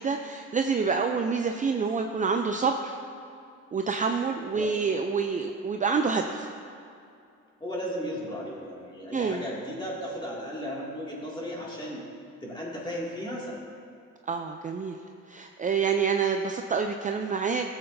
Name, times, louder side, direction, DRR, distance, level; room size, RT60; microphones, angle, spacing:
voice 1, 0.0-3.0 3.7-6.5 9.1-9.4 14.3-15.0 15.3-17.7, right 5 dB, 25° right, 4 dB, 0.4 m, -27 dB
voice 2, 7.6-12.0 12.4-13.6, equal, 15° left, -4 dB, 2.4 m, -35 dB
14.0 x 7.8 x 2.7 m, 2.5 s
cardioid pair, 90°, 30 cm